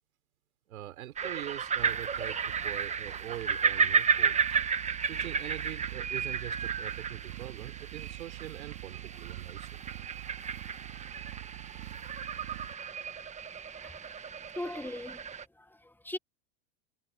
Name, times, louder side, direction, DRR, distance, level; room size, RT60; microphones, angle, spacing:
voice 1, 0.7-4.4 5.1-9.7, right 13 dB, 85° right, 3.7 m, -43 dB
sound 1, 1.2-15.4, right 6 dB, 15° right, 1.3 m, -33 dB
sound 2, 1.8-12.7, right 18 dB, 70° right, 3.6 m, -46 dB
voice 2, 14.5-15.2 15.6-16.2, left 1 dB, 5° left, 1.2 m, -39 dB
supercardioid pair, 125°, 41 cm